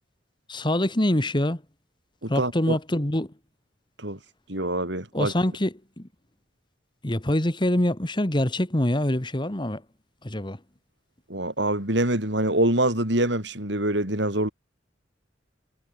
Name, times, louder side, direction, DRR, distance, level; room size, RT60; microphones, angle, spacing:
voice 1, 0.5-1.6 2.3-3.3 5.1-6.1 7.0-9.8 10.2-10.6, left 1 dB, 25° left, 1.7 m, -25 dB
voice 2, 2.2-2.8 4.0-4.2 4.5-5.3 11.3-14.5, right 1 dB, 65° right, 6.0 m, -25 dB
head